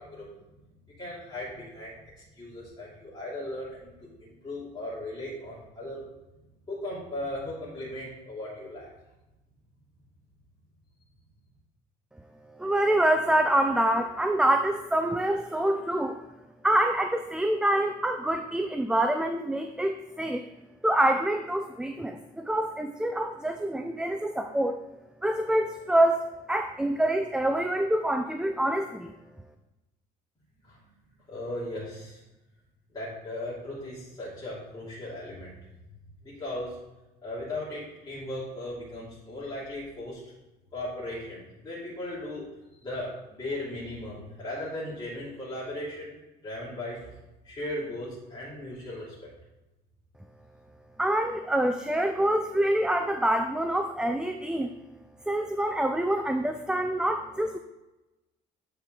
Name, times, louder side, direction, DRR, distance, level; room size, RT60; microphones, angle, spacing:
voice 1, 1.0-1.9 2.4-6.0 6.7-8.9 30.7-30.8 31.3-32.2 32.9-35.5 36.2-36.8 37.2-40.2 40.7-42.4 42.8-43.1 43.4-46.1 46.4-47.1 47.4-49.1, left 1 dB, 25° left, -8 dB, 2.5 m, -37 dB
voice 2, 12.6-16.2 16.6-20.4 20.8-24.8 25.2-26.2 26.5-29.1 51.0-54.7 55.3-57.6, right 1 dB, 5° right, 6 dB, 0.3 m, -26 dB
8.1 x 4.5 x 3.7 m, 1.0 s
cardioid pair, 110°, 17 cm